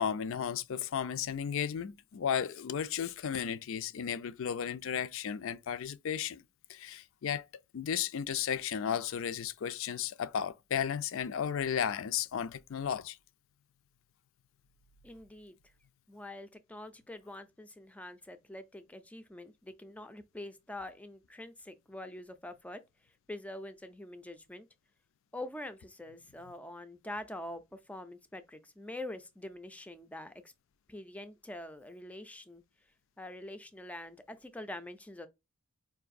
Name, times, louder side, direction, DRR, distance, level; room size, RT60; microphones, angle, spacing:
voice 1, 0.0-6.4 6.7-7.4 7.7-13.2, left 8 dB, 65° left, 0.4 m, -34 dB
voice 2, 15.0-15.6 16.1-24.7 25.3-30.5 30.9-32.6 33.2-35.3, left 1 dB, 5° left, 0.4 m, -45 dB
4.7 x 2.6 x 2.5 m
head